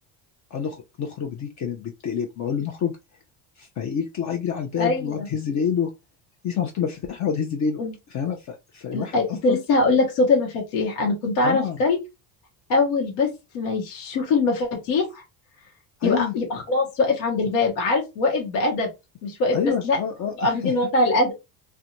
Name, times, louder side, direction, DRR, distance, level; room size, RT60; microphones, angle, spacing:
voice 1, 0.5-2.9 3.6-5.9 6.4-7.8 8.1-9.6 11.4-11.8 16.0-16.3 19.5-20.7, left 7 dB, 40° left, 0.5 m, -27 dB
voice 2, 4.8-5.3 7.8-7.9 8.9-12.0 12.7-13.3 13.5-15.2 16.0-18.9 19.2-19.6 19.8-20.0 20.4-21.3, left 3 dB, 80° left, 0.9 m, -22 dB
2.4 x 2.2 x 2.9 m
supercardioid pair, 85°, 46 cm